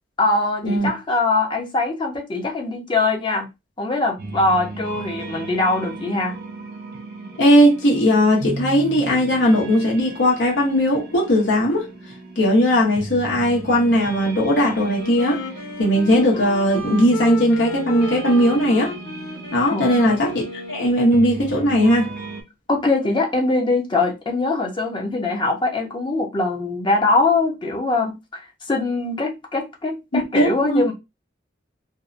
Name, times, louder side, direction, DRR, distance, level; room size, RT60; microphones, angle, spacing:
voice 1, 0.2-3.5 3.8-6.3 19.7-20.2 22.7-28.4 28.7-30.9, left 3 dB, 25° left, 0.6 m, -22 dB
sound 1, 4.2-22.4, right 3 dB, 55° right, 0.6 m, -36 dB
voice 2, 7.4-11.9 12.4-15.4 15.8-18.9 19.5-22.1 30.1-30.8, equal, 90° left, 0.9 m, -18 dB
Wind instrument woodwind instrument, 14.8-21.4, left 2 dB, 65° left, 1.3 m, -34 dB
2.6 x 2.1 x 2.5 m
head